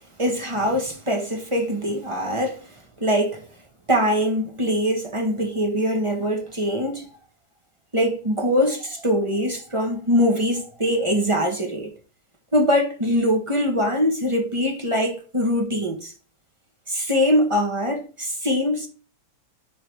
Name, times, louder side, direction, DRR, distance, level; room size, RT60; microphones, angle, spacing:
voice 1, 0.2-3.5 3.9-7.1 7.9-11.9 12.5-16.1 16.9-18.9, equal, 20° right, 1.3 m, -23 dB
11.0 x 4.0 x 3.4 m
omnidirectional pair, 1.8 m